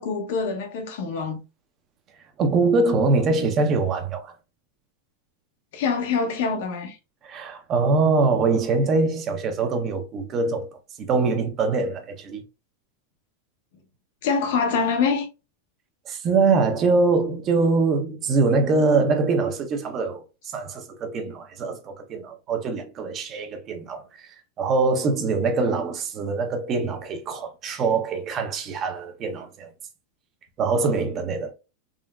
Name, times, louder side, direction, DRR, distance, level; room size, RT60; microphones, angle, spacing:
voice 1, 0.0-1.4 5.7-7.0 14.2-15.3, left 5 dB, 70° left, 0.7 m, -25 dB
voice 2, 2.4-4.3 7.2-10.7 11.0-12.4 16.1-29.7 30.6-31.5, right 3 dB, 35° right, 0.6 m, -23 dB
3.7 x 2.1 x 2.2 m
supercardioid pair, 130°, 0 cm